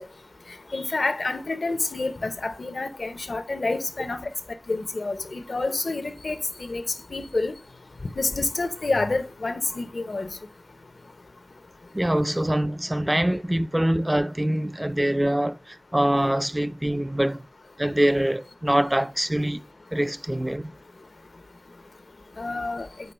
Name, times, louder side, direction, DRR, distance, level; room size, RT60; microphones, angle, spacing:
voice 1, 0.7-4.3 4.7-6.8 7.1-7.5 8.2-10.3 22.4-22.9, left 3 dB, 80° left, 0.8 m, -28 dB
voice 2, 11.9-17.5 17.8-19.6 19.9-20.7, right 1 dB, 15° right, 0.4 m, -24 dB
6.8 x 4.7 x 4.4 m
wide cardioid pair, 55°, 0 cm